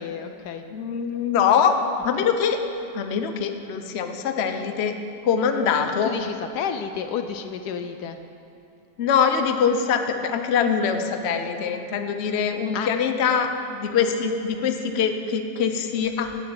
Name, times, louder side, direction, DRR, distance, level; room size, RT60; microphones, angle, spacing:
voice 1, 0.0-0.6 6.0-8.2 12.7-12.9, left 7 dB, 75° left, 8 dB, 1.1 m, -31 dB
voice 2, 0.7-1.8 2.0-2.6 2.9-4.9 5.2-6.1 9.0-16.3, left 7 dB, 50° left, 7 dB, 0.9 m, -23 dB
13.5 x 7.4 x 8.9 m, 2.9 s
omnidirectional pair, 1.8 m